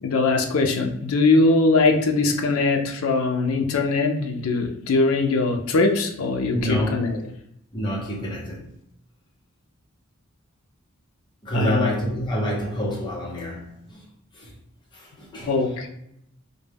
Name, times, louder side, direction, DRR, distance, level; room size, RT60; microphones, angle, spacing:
voice 1, 0.0-7.2 11.5-11.9 15.5-15.9, left 3 dB, 75° left, 4 dB, 0.4 m, -21 dB
voice 2, 6.5-7.1 7.7-8.7 11.4-14.0 14.3-14.5 14.9-15.6, equal, 20° left, -4 dB, 0.7 m, -27 dB
2.2 x 2.1 x 3.3 m, 0.76 s
head